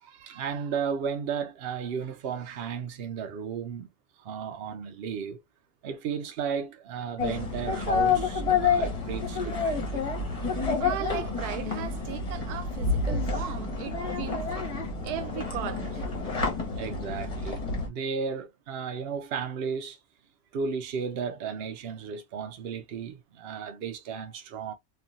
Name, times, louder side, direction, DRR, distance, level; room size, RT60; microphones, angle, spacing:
voice 1, 0.0-3.9 4.2-5.4 5.8-10.0 16.7-20.0 20.5-24.7, right 6 dB, 55° right, 0.8 m, -34 dB
sound 1, 7.2-17.9, left 4 dB, 30° left, 0.8 m, -29 dB
voice 2, 10.8-14.5 15.0-16.0, right 11 dB, 90° right, 1.1 m, -37 dB
3.1 x 2.4 x 2.5 m
omnidirectional pair, 1.6 m